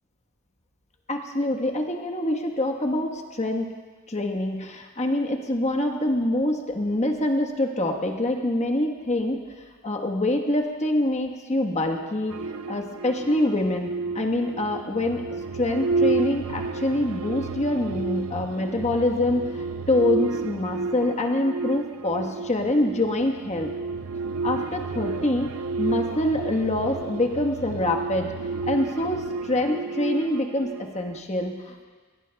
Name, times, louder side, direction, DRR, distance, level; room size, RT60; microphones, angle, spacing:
voice 1, 1.1-3.7 4.1-9.4 9.8-12.4 12.7-13.9 14.1-15.2 15.5-23.7 24.4-25.5 25.8-28.3 28.7-31.8, left 1 dB, 35° left, 2 dB, 1.3 m, -25 dB
sound 1, 12.3-31.2, right 4 dB, 75° right, 0.5 m, -31 dB
22.0 x 18.0 x 2.3 m, 1.5 s
head